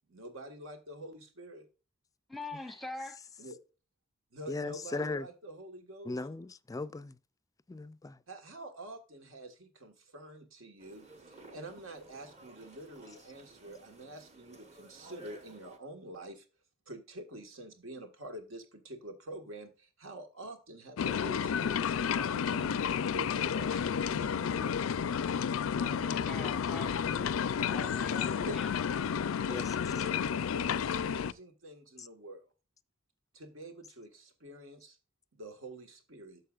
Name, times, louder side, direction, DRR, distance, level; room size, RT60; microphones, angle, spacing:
voice 1, 0.1-1.7 3.4-3.6 4.3-6.3 8.3-16.5 16.9-24.8 28.5-28.6 29.4-32.4 33.3-35.0 35.3-36.4, right 1 dB, 80° right, 1.6 m, -47 dB
voice 2, 2.3-3.2 25.7-28.7, left 2 dB, ahead, 0.8 m, -44 dB
voice 3, 4.5-5.2 6.1-7.1 7.7-8.1 26.4-26.5 29.5-29.6, left 3 dB, 15° left, 0.3 m, -37 dB
sound 1, 10.8-15.8, right 2 dB, 35° right, 1.2 m, -55 dB
sound 2, 21.0-31.3, left 7 dB, 90° left, 0.4 m, -31 dB
11.0 x 6.7 x 2.4 m
head